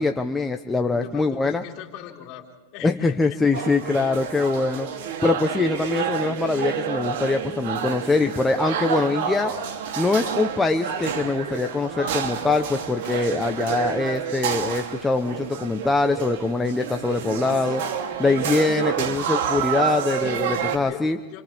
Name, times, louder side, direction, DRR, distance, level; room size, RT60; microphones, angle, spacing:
voice 1, 0.0-1.6 2.8-9.5 10.0-17.8 18.2-21.2, left 3 dB, 10° left, 5 dB, 1.0 m, -23 dB
voice 2, 0.9-2.5 2.7-4.1 20.3-21.4, left 11 dB, 45° left, 1 dB, 4.7 m, -41 dB
sound 1, 3.5-20.8, right 8 dB, 60° right, 3.1 m, -29 dB
29.0 x 27.0 x 3.7 m, 1.2 s
supercardioid pair, 135°, 0 cm